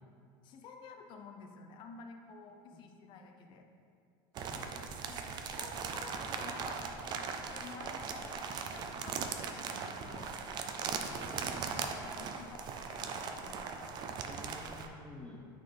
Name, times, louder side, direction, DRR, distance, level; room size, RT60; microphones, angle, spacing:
voice 1, 0.4-3.7 5.1-5.2 5.5-10.3 10.8-11.3 11.8-13.9, left 4 dB, 45° left, 4 dB, 0.6 m, -51 dB
sound 1, 4.3-14.9, right 5 dB, 40° right, 0.5 m, -39 dB
voice 2, 11.1-11.7 14.2-15.5, left 2 dB, 10° left, -5 dB, 1.3 m, -50 dB
8.8 x 4.0 x 3.4 m, 2.5 s
supercardioid pair, 140°, 11 cm